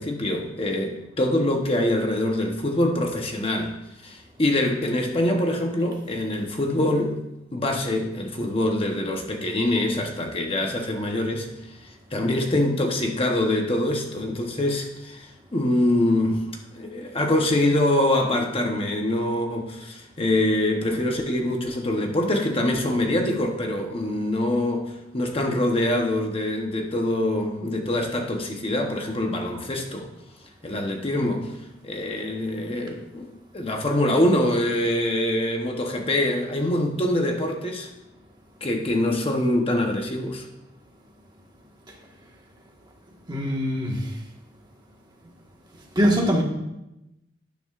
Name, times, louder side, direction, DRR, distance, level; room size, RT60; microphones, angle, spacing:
voice 1, 0.0-3.7 4.0-7.2 7.5-16.5 16.7-30.1 30.6-31.6 31.8-37.9 38.6-40.4, left 1 dB, 30° left, 2 dB, 0.9 m, -24 dB
voice 2, 43.3-44.2 45.9-46.4, equal, 20° right, 0 dB, 1.4 m, -23 dB
12.0 x 10.5 x 2.4 m, 0.91 s
head